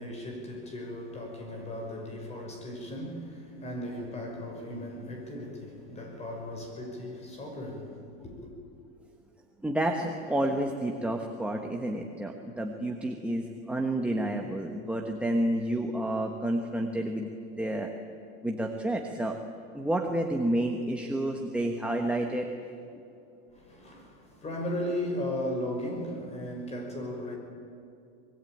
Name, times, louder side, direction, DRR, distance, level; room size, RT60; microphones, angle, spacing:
voice 1, 0.0-8.5 23.5-27.4, left 1 dB, 20° left, 5.8 m, -36 dB
voice 2, 9.6-17.9 18.4-19.4 19.7-22.5, right 1 dB, 5° right, 1.2 m, -30 dB
25.5 x 22.0 x 9.3 m
cardioid pair, 170°, 32 cm